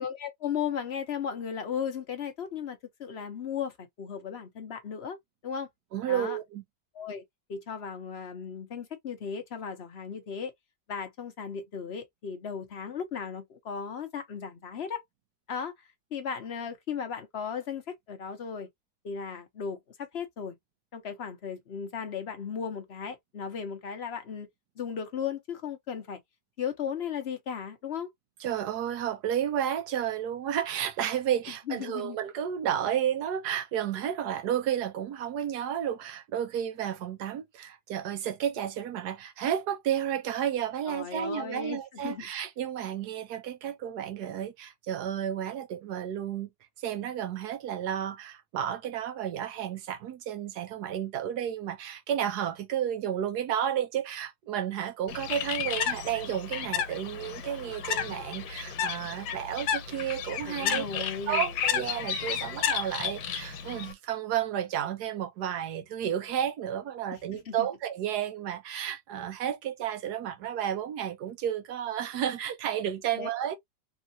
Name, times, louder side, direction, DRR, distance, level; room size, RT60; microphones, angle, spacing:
voice 1, 0.0-5.2 5.4-5.7 6.1-6.4 6.9-7.2 7.5-10.5 10.9-15.0 15.5-15.7 16.1-18.7 19.0-20.6 20.9-24.5 24.8-26.2 26.6-28.1 31.7-32.2 40.9-42.2 60.4-61.5 67.1-67.7 73.2-73.3, left 7 dB, 45° left, 0.9 m, -36 dB
voice 2, 5.9-6.6 28.4-46.5 46.8-73.6, right 10 dB, 65° right, 1.1 m, -32 dB
Bird, 55.1-63.9, left 8 dB, 85° left, 1.4 m, -32 dB
3.6 x 2.4 x 2.6 m
omnidirectional pair, 2.0 m